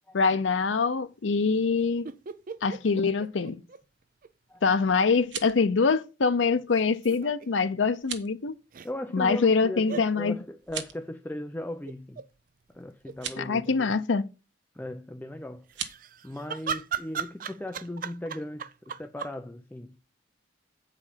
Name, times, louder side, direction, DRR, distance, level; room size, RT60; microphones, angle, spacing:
voice 1, 0.1-2.1 2.6-3.6 4.6-8.6 9.1-10.4 13.4-14.2, left 4 dB, 90° left, 0.6 m, -24 dB
sound 1, 2.0-4.3 4.5-4.6 6.7-7.5 8.7-8.9 9.9-10.1 11.9-12.3 12.7-12.8 13.0-13.7 15.7-19.4, right 7 dB, 50° right, 0.5 m, -37 dB
sound 2, 5.1-5.7 7.9-8.3 10.6-11.1 13.1-13.4 15.7-16.0, right 8 dB, 75° right, 1.2 m, -37 dB
voice 2, 8.8-12.2 12.7-14.0 14.7-15.7 16.2-20.0, left 1 dB, 10° left, 0.5 m, -38 dB
8.5 x 5.0 x 5.7 m
head